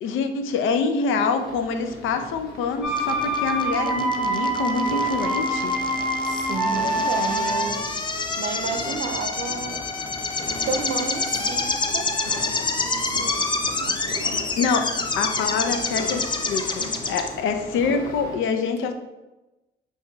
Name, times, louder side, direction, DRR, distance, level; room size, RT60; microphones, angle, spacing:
voice 1, 0.0-5.8 14.6-14.9 15.2-18.9, left 5 dB, 80° left, 7 dB, 0.5 m, -25 dB
sound 1, 1.2-18.4, left 2 dB, 45° left, 1.2 m, -39 dB
sound 2, 2.8-7.9, right 1 dB, ahead, 0.8 m, -25 dB
sound 3, 3.0-17.3, left 3 dB, 25° left, 0.4 m, -28 dB
voice 2, 6.2-8.1 8.4-9.8 10.7-12.1 12.8-14.0, right 5 dB, 60° right, 7 dB, 0.5 m, -32 dB
6.4 x 2.8 x 2.3 m, 1.1 s
cardioid pair, 90°, 20 cm